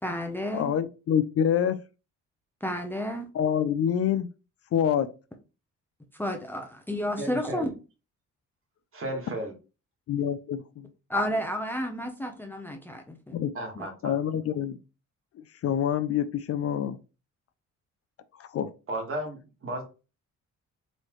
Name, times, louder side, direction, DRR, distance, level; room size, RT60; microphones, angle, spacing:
voice 1, 0.0-0.7 2.6-3.3 6.1-7.7 11.1-13.4 13.8-13.9, equal, 5° left, 0.7 m, -31 dB
voice 2, 0.5-1.8 3.3-4.3 4.7-5.1 10.1-10.6 13.3-13.5 14.0-14.8 15.6-17.0 18.4-18.7, left 9 dB, 50° left, 0.5 m, -26 dB
voice 3, 7.2-7.7 8.9-9.5 13.5-14.1 18.9-19.8, right 1 dB, 45° right, 1.6 m, -34 dB
4.0 x 3.1 x 3.1 m
cardioid pair, 90°, 30 cm